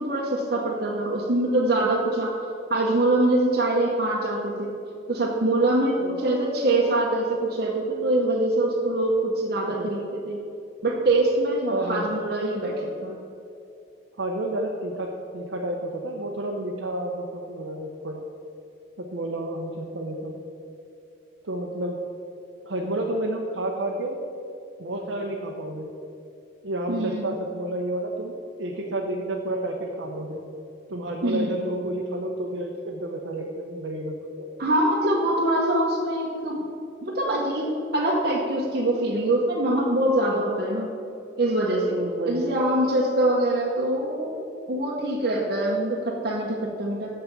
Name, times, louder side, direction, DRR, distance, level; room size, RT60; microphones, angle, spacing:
voice 1, 0.0-2.3 2.7-4.7 5.1-10.4 10.8-13.1 26.9-27.2 31.2-31.6 34.6-36.7 37.0-40.9 41.4-41.9 42.3-44.3 44.7-47.1, right 1 dB, 50° right, -3 dB, 0.9 m, -24 dB
voice 2, 11.7-12.1 14.2-18.2 19.0-20.4 21.4-22.0 22.6-24.2 24.8-25.9 26.6-30.4 30.9-34.5 41.9-42.4, right 1 dB, 80° right, 0 dB, 0.8 m, -30 dB
6.6 x 5.9 x 6.9 m, 2.6 s
head